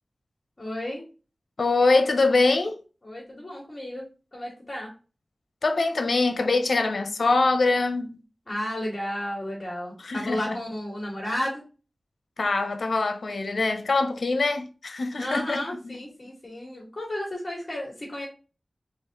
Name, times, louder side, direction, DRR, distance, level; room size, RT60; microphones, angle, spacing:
voice 1, 0.6-1.0 3.0-4.9 8.5-11.6 15.2-18.3, left 1 dB, 40° left, 2.2 m, -33 dB
voice 2, 1.6-2.8 5.6-8.2 10.0-10.5 12.4-15.9, left 3 dB, 85° left, 0.8 m, -23 dB
4.3 x 3.8 x 3.1 m
wide cardioid pair, 70°, 0 cm